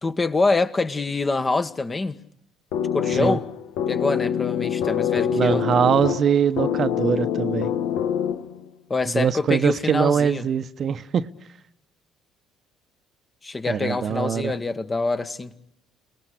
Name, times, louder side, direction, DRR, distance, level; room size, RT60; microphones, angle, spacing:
voice 1, 0.0-2.2 2.9-3.4 3.9-5.7 8.9-10.4 13.4-15.5, left 3 dB, 25° left, 1.6 m, -25 dB
sound 1, 2.7-8.7, left 9 dB, 70° left, 1.2 m, -25 dB
voice 2, 5.3-7.7 9.1-11.3 13.7-14.6, right 7 dB, 50° right, 1.0 m, -22 dB
28.5 x 19.5 x 8.4 m
hypercardioid pair, 55°, 0 cm